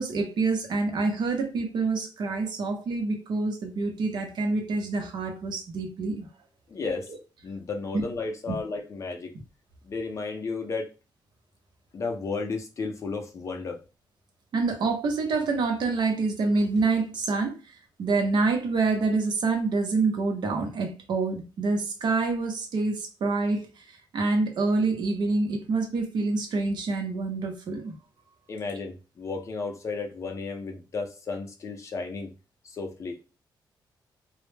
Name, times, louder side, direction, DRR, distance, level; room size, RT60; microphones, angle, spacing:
voice 1, 0.0-6.3 7.9-8.0 8.5-8.6 14.5-27.9, right 3 dB, 65° right, 0.7 m, -27 dB
voice 2, 6.7-7.1 7.4-9.3 9.8-10.9 11.9-13.8 28.5-32.3 32.6-33.4, left 4 dB, 40° left, 0.5 m, -33 dB
2.1 x 2.0 x 3.2 m
wide cardioid pair, 165°, 8 cm